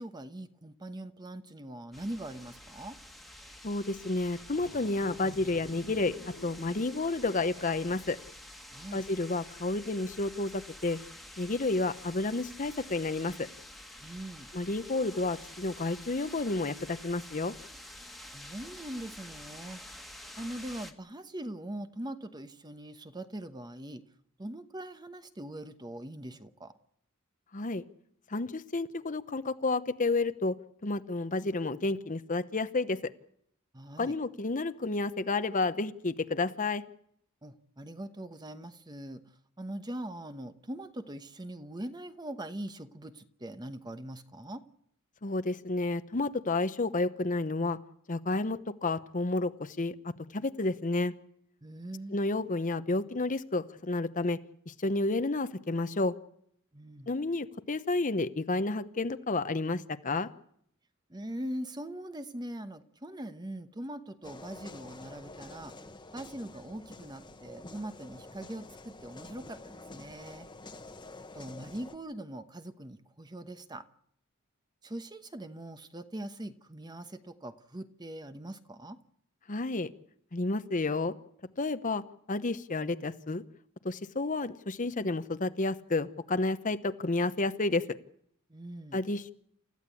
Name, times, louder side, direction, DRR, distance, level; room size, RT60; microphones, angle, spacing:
voice 1, 0.0-3.0 8.7-9.0 14.0-14.5 18.3-19.8 20.4-24.0 24.4-26.7 33.7-34.1 37.4-39.2 39.6-44.6 51.6-52.2 56.7-57.1 61.1-65.7 66.1-70.5 71.3-73.8 74.8-79.0 88.5-89.0, right 1 dB, 20° right, 1.0 m, -42 dB
waterspout small city square Lisbon, 1.9-20.9, left 1 dB, ahead, 1.6 m, -49 dB
voice 2, 3.6-6.2 6.4-8.2 8.9-11.0 11.4-13.5 14.5-17.5 27.5-27.8 28.3-30.5 30.8-33.0 34.0-36.8 45.2-47.8 48.1-49.9 50.3-51.1 52.1-54.4 54.7-56.1 57.1-60.3 79.5-79.9 80.3-81.1 81.6-82.0 82.3-83.4 83.8-87.8 88.9-89.3, left 2 dB, 40° left, 0.9 m, -30 dB
sound 1, 4.0-4.1 4.4-8.1, left 2 dB, 70° left, 1.4 m, -50 dB
sound 2, 64.2-72.0, left 2 dB, 20° left, 1.2 m, -48 dB
29.0 x 14.5 x 8.5 m
head